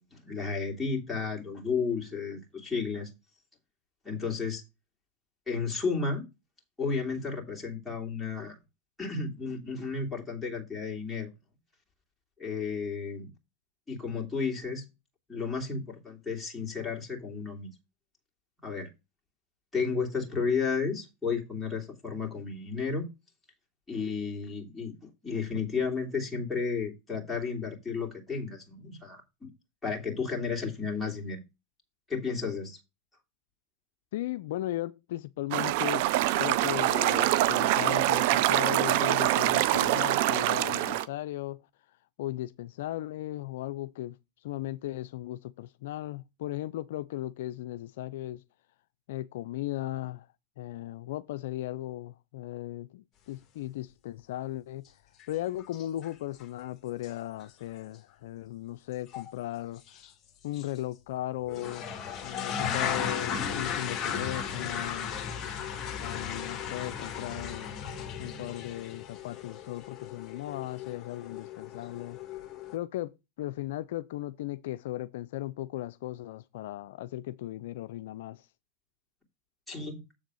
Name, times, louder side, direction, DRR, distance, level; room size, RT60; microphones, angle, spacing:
voice 1, 0.1-3.1 4.0-4.6 5.5-6.3 6.8-8.6 9.0-11.3 12.4-13.3 13.9-14.8 15.3-17.7 18.6-18.9 19.7-23.1 23.9-25.0 25.2-29.5 29.8-31.4 32.1-32.8 79.7-80.0, left 5 dB, 5° left, 2.9 m, -32 dB
voice 2, 34.1-36.0 36.4-41.6 42.2-44.2 44.4-48.4 49.1-50.3 50.6-54.8 55.3-59.8 60.4-61.9 62.2-65.1 66.0-67.8 68.2-72.2 72.7-78.5, left 14 dB, 75° left, 0.4 m, -37 dB
sound 1, 35.5-41.0, right 15 dB, 65° right, 0.5 m, -25 dB
sound 2, 55.2-55.3 55.6-56.1 56.4-56.5 57.0-57.1 57.4-57.5 59.1-59.3 59.9-60.1 60.5-60.6 61.5-72.8, left 7 dB, 35° left, 1.5 m, -36 dB
7.4 x 3.9 x 6.2 m
supercardioid pair, 115°, 0 cm